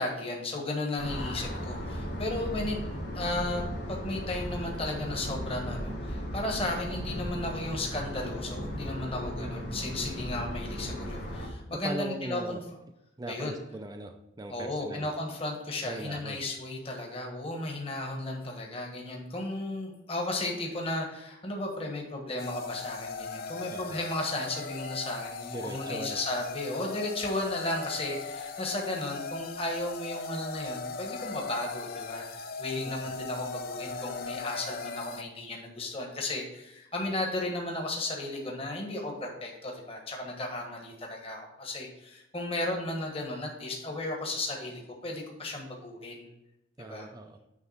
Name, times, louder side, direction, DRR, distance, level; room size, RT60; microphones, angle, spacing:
voice 1, 0.0-2.8 3.1-12.6 13.3-13.5 14.5-46.3 46.8-47.1, left 2 dB, 30° left, 0 dB, 1.4 m, -34 dB
sound 1, 1.0-11.5, equal, 65° left, 2.4 m, -36 dB
voice 2, 11.7-12.6 13.2-15.1 15.8-16.4 23.7-24.0 25.5-26.2 32.8-32.9 46.8-47.4, right 2 dB, 20° right, 5 dB, 0.4 m, -39 dB
sound 2, 22.4-35.2, left 4 dB, 50° left, 0.5 m, -39 dB
9.3 x 3.3 x 5.7 m, 0.90 s
head